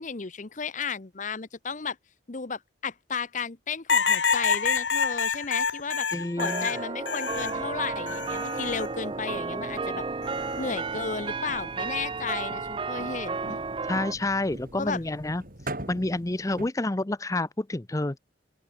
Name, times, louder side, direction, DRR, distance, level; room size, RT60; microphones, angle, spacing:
voice 1, 0.0-2.0 2.3-6.1 6.4-10.0 10.6-13.6 14.8-15.0, left 5 dB, 40° left, 0.9 m, -34 dB
sound 1, 3.9-7.6 8.1-8.9 10.2-10.6, left 6 dB, 80° left, 2.1 m, -27 dB
voice 2, 6.1-6.7 13.8-15.4 15.9-18.2, left 2 dB, 20° left, 0.6 m, -29 dB
sound 2, 6.4-14.1, right 4 dB, 25° right, 0.5 m, -33 dB
sound 3, 7.3-16.7, right 1 dB, 50° right, 7.9 m, -43 dB
open air
head